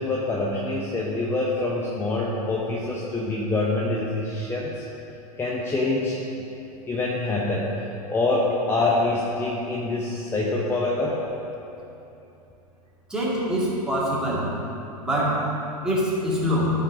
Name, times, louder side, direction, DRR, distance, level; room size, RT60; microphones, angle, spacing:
voice 1, 0.0-4.8 5.4-6.2 6.9-11.2, left 2 dB, 10° left, -4 dB, 0.9 m, -25 dB
voice 2, 13.1-14.5 15.0-15.4 15.8-16.7, equal, 5° right, -8 dB, 2.4 m, -24 dB
13.0 x 4.8 x 5.2 m, 2.8 s
figure-of-eight pair, 95°, 20 cm